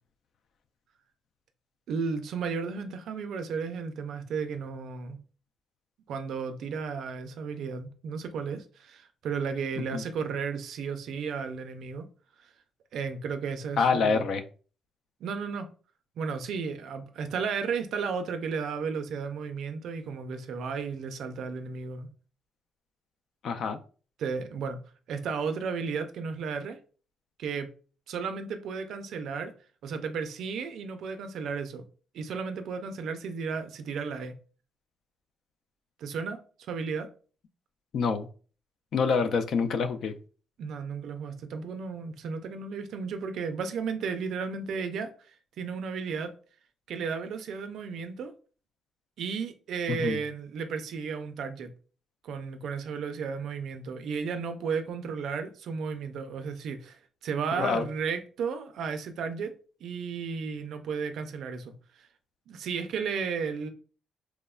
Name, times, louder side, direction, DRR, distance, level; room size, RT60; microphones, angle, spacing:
voice 1, 1.9-5.2 6.1-12.1 12.4-12.5 12.9-14.3 15.2-15.7 16.2-22.1 24.2-24.8 25.1-26.8 27.4-27.7 28.1-29.5 29.8-31.8 32.1-34.4 36.0-37.1 40.6-46.3 46.9-48.3 49.2-51.7 52.2-59.5 59.8-62.1 62.5-63.7, right 5 dB, 75° right, 0.4 m, -34 dB
voice 2, 13.8-14.4 23.4-23.8 37.9-38.3 38.9-40.1 49.9-50.2 57.6-57.9, left 5 dB, 65° left, 0.3 m, -26 dB
3.0 x 2.1 x 2.3 m
cardioid pair, 90°, 0 cm